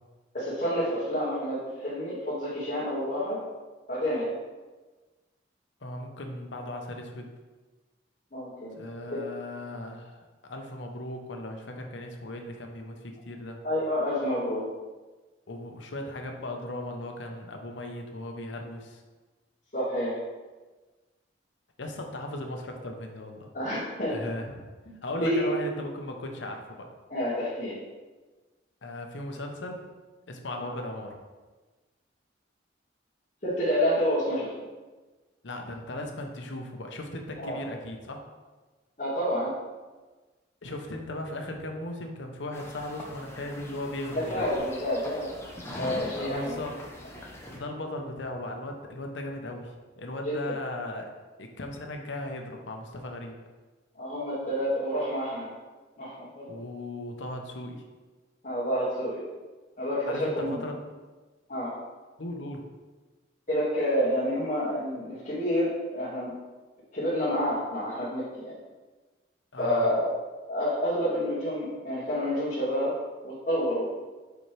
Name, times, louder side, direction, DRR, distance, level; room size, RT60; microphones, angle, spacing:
voice 1, 0.3-3.4 3.9-4.3 8.3-8.8 9.1-9.2 13.6-14.7 19.7-20.2 23.5-24.2 24.9-25.5 27.1-27.8 30.6-30.7 33.4-34.5 37.4-37.6 39.0-39.5 44.1-45.3 45.7-46.6 50.2-50.5 54.0-55.5 56.0-56.6 58.4-59.2 59.8-60.6 61.5-61.7 63.5-66.3 66.9-68.6 69.6-70.2 70.5-72.9 73.2-73.9, equal, 40° left, -12 dB, 1.8 m, -29 dB
voice 2, 5.8-7.3 8.8-10.2 10.4-13.6 15.5-19.0 21.8-23.5 24.1-24.6 25.0-26.9 28.8-29.9 30.3-31.2 35.4-38.2 40.6-44.4 46.2-46.8 47.5-51.1 51.4-53.4 56.5-57.8 60.1-60.8 62.2-62.6 69.5-69.9, left 1 dB, 75° left, 3 dB, 0.8 m, -37 dB
sound 1, 42.5-47.6, left 1 dB, 15° left, 0.8 m, -42 dB
7.0 x 4.4 x 3.3 m, 1.3 s
head